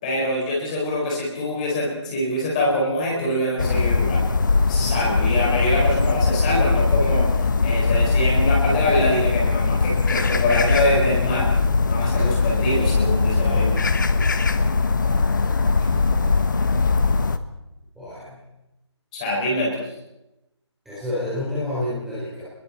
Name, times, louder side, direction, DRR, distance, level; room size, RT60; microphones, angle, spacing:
voice 1, 0.0-4.2 4.7-11.5 11.9-13.9 19.1-19.8, left 1 dB, 15° left, -3 dB, 5.0 m, -24 dB
sound 1, 3.6-17.4, left 4 dB, 45° left, 1.2 m, -20 dB
voice 2, 18.0-18.4 20.9-22.4, left 1 dB, ahead, -11 dB, 4.1 m, -29 dB
28.5 x 22.0 x 4.4 m, 0.92 s
figure-of-eight pair, 175°, 15 cm